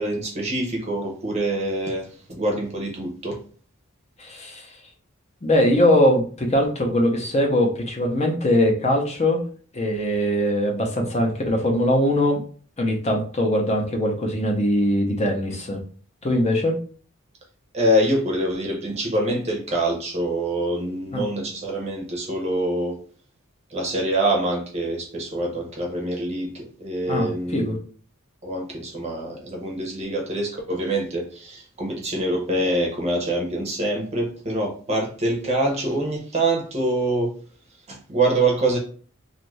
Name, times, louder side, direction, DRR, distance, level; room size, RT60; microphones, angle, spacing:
voice 1, 0.0-3.4 17.7-23.0 23.7-27.7 28.4-37.3 37.9-38.8, right 1 dB, 30° right, 0 dB, 0.7 m, -25 dB
voice 2, 4.2-4.7 5.4-9.4 9.7-12.4 12.8-15.8 16.2-16.8 21.1-21.2 27.1-27.8, left 1 dB, 30° left, 1 dB, 0.7 m, -21 dB
2.6 x 2.4 x 3.1 m, 0.42 s
head